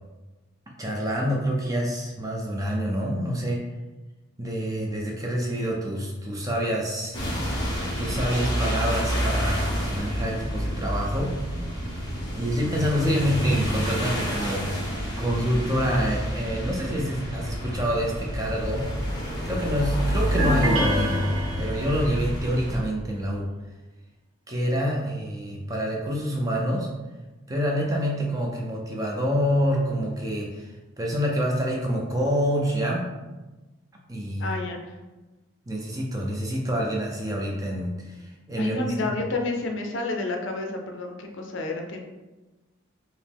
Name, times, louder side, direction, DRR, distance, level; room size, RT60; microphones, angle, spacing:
voice 1, 0.8-3.6 4.4-7.2 8.0-11.3 12.3-18.9 19.2-21.3 21.6-23.5 24.5-26.9 27.5-33.1 34.1-34.5 35.7-39.1, equal, 15° right, -1 dB, 0.5 m, -27 dB
sound 1, 7.1-22.8, equal, 20° left, 0.9 m, -28 dB
sound 2, 20.4-22.1, equal, 80° right, 0.8 m, -27 dB
voice 2, 34.4-35.0 38.6-42.0, left 2 dB, 60° left, 2 dB, 0.5 m, -30 dB
5.0 x 2.1 x 3.4 m, 1.1 s
head